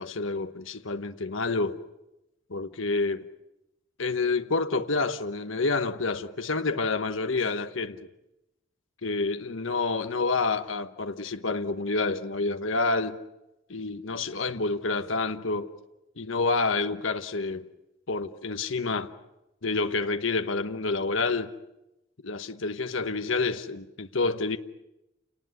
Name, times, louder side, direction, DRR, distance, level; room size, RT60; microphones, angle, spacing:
voice 1, 0.0-1.8 2.5-3.2 4.0-8.0 9.0-13.2 13.7-15.7 16.2-17.6 18.1-19.1 19.6-21.5 22.2-24.6, left 3 dB, 75° left, 1.1 m, -28 dB
29.5 x 19.0 x 9.5 m
head